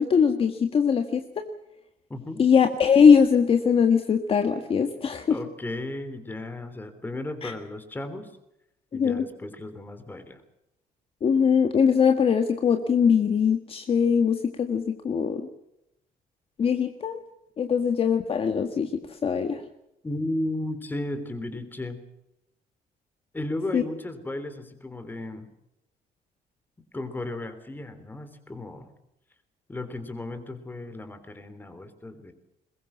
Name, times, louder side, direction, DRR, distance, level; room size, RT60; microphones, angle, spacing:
voice 1, 0.0-1.4 2.4-5.4 7.4-7.5 8.9-9.2 11.2-15.5 16.6-17.2 17.6-19.6 23.7-23.8, left 6 dB, 35° left, 6 dB, 1.7 m, -21 dB
voice 2, 2.1-2.4 5.3-8.3 8.9-10.4 20.0-22.0 23.3-25.5 26.9-28.9 29.7-32.3, left 1 dB, 10° left, 10 dB, 3.4 m, -34 dB
22.0 x 21.5 x 7.3 m, 0.85 s
cardioid pair, 165°, 16 cm